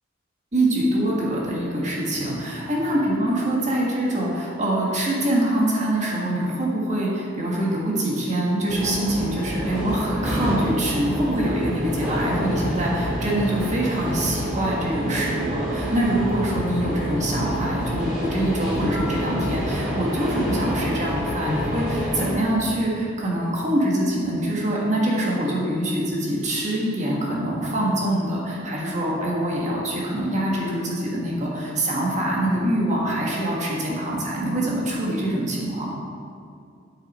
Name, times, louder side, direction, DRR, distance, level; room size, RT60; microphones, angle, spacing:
voice 1, 0.5-35.9, right 1 dB, 40° right, -4 dB, 1.5 m, -24 dB
sound 1, 8.7-22.3, equal, 5° right, 2.2 m, -28 dB
9.2 x 6.6 x 4.1 m, 2.3 s
head